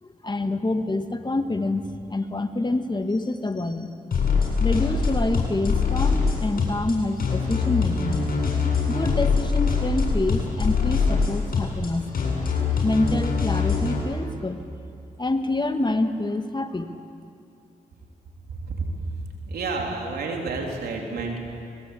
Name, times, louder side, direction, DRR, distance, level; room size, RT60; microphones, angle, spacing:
voice 1, 0.0-3.9 4.6-8.2 8.9-12.1 12.8-14.6 15.2-16.9, left 2 dB, 30° left, 7 dB, 1.9 m, -27 dB
sound 1, 4.1-14.0, left 5 dB, 65° left, 7.8 m, -23 dB
voice 2, 19.5-21.4, right 3 dB, 80° right, 1 dB, 3.9 m, -29 dB
24.5 x 21.5 x 8.6 m, 2.5 s
supercardioid pair, 45°, 16 cm